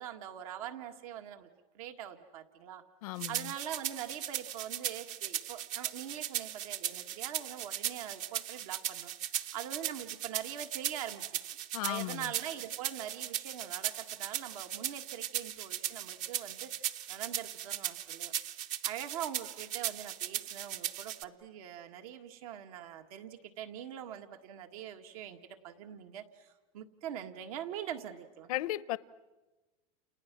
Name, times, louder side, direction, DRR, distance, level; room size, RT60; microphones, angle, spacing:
voice 1, 0.0-1.5 1.7-2.8 3.3-9.1 9.5-18.3 18.8-28.5, right 10 dB, 75° right, 2.0 m, -43 dB
voice 2, 3.0-3.5 11.7-12.3 28.5-29.0, left 17 dB, 80° left, 0.8 m, -35 dB
sound 1, 3.2-21.2, right 11 dB, 45° right, 0.8 m, -38 dB
30.0 x 29.5 x 6.2 m
supercardioid pair, 140°, 19 cm